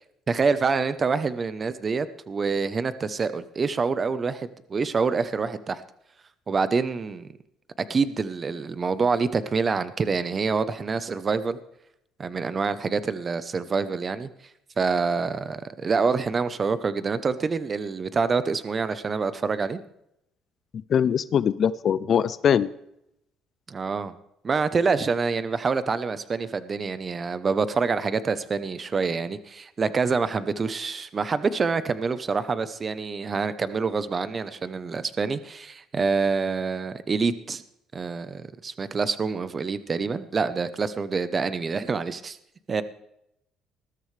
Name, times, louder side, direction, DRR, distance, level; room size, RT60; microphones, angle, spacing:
voice 1, 0.3-5.8 6.5-7.3 7.9-11.6 12.2-14.3 14.8-19.8 23.7-24.1 24.4-37.6 37.9-42.4 42.7-42.8, right 4 dB, 30° right, 13 dB, 0.8 m, -26 dB
voice 2, 20.9-22.7, left 8 dB, 45° left, 17 dB, 0.4 m, -22 dB
20.5 x 13.0 x 3.3 m, 0.80 s
cardioid pair, 125°, 0 cm